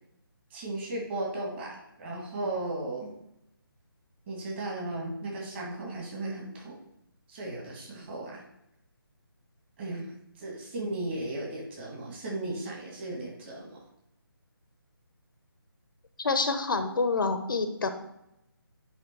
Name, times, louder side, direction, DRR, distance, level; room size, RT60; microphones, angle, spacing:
voice 1, 0.5-3.1 4.3-6.8 7.3-8.4 9.8-10.1 10.4-13.8, right 2 dB, 30° right, -2 dB, 2.1 m, -36 dB
voice 2, 16.2-17.9, left 4 dB, 60° left, 8 dB, 0.8 m, -27 dB
10.0 x 3.4 x 4.6 m, 0.85 s
figure-of-eight pair, 160°, 13 cm